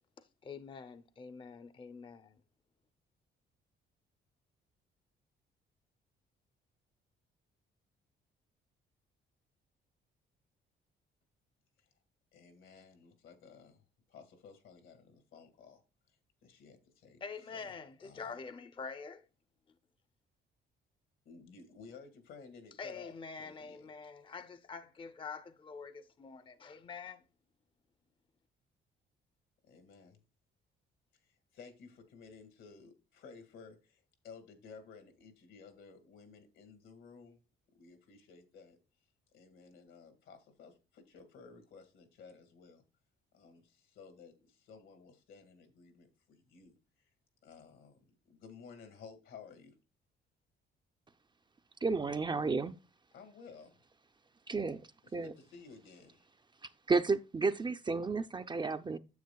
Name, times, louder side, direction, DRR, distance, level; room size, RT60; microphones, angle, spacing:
voice 1, 0.4-2.4 17.2-19.2 22.8-27.2, left 5 dB, 25° left, 0.6 m, -46 dB
voice 2, 12.3-15.8 16.4-17.2 17.5-18.3 21.2-23.1 23.4-23.9 29.7-30.2 31.2-37.4 37.7-38.8 39.3-42.8 43.3-46.7 47.4-48.0 48.3-49.7 53.1-53.8 55.2-56.2, left 5 dB, 80° left, 1.8 m, -55 dB
voice 3, 51.8-52.8 54.5-55.3 56.6-59.0, right 4 dB, 25° right, 0.4 m, -32 dB
9.4 x 7.3 x 2.3 m
cardioid pair, 90°, 20 cm